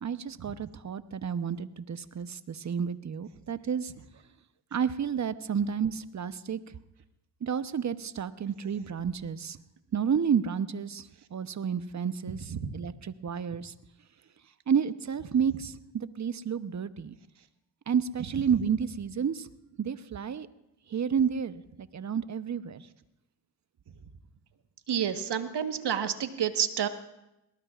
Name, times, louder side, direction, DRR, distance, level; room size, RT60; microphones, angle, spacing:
voice 1, 0.0-3.9 4.7-6.6 7.4-9.6 9.9-13.7 14.7-17.2 17.9-19.5 19.8-20.5 20.9-22.8, right 7 dB, 35° right, 13 dB, 0.9 m, -30 dB
voice 2, 24.9-26.9, right 8 dB, 55° right, 8 dB, 1.4 m, -29 dB
21.5 x 18.5 x 2.5 m, 0.89 s
supercardioid pair, 50°, 47 cm